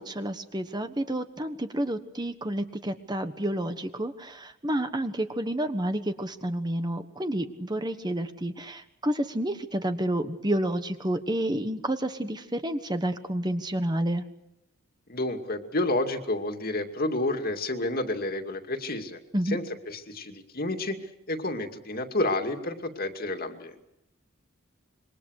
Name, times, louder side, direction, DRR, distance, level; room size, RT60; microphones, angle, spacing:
voice 1, 0.0-14.2 19.3-19.6, right 1 dB, 20° right, 9 dB, 1.3 m, -30 dB
voice 2, 15.1-19.2 19.4-21.0 21.3-23.9, left 2 dB, 45° left, 6 dB, 2.5 m, -30 dB
26.5 x 23.5 x 6.6 m, 0.85 s
head